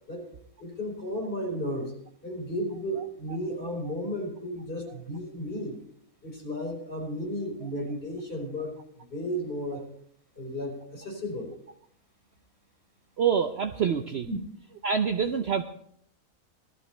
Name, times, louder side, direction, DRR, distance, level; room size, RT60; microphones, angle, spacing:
voice 1, 0.6-1.9 2.2-5.8 6.2-8.7 9.1-9.9 10.4-11.5 14.2-14.4, equal, 40° left, -2 dB, 4.9 m, -33 dB
voice 2, 13.2-14.3 14.8-15.6, right 7 dB, 60° right, 7 dB, 0.8 m, -26 dB
19.0 x 13.5 x 3.3 m, 0.69 s
omnidirectional pair, 1.5 m